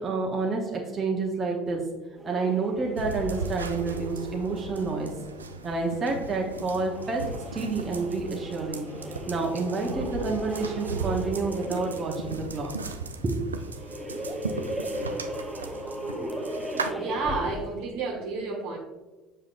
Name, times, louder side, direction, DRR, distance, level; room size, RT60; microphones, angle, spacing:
voice 1, 0.0-1.8 2.2-5.1 5.6-7.2 7.5-8.9 9.3-12.7 13.2-13.5, right 3 dB, 30° right, -1 dB, 1.0 m, -29 dB
sound 1, 2.2-17.8, equal, 5° right, 0.8 m, -38 dB
sound 2, 3.0-16.9, right 4 dB, 85° right, 0.3 m, -37 dB
voice 2, 16.9-18.8, right 4 dB, 65° right, 0 dB, 1.3 m, -31 dB
7.4 x 5.5 x 2.5 m, 1.2 s
figure-of-eight pair, 60°, 0 cm